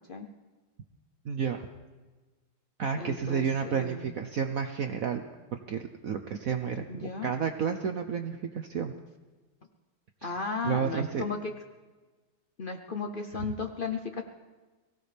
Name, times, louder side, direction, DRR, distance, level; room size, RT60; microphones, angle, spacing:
voice 1, 1.2-1.7 2.8-5.2 5.5-8.9 10.2-10.3 10.6-11.2, right 6 dB, 60° right, 6 dB, 0.9 m, -31 dB
voice 2, 3.0-4.1 6.9-7.3 10.2-11.5 12.6-14.2, left 4 dB, 85° left, 5 dB, 0.4 m, -35 dB
23.0 x 16.0 x 3.4 m, 1.3 s
omnidirectional pair, 2.2 m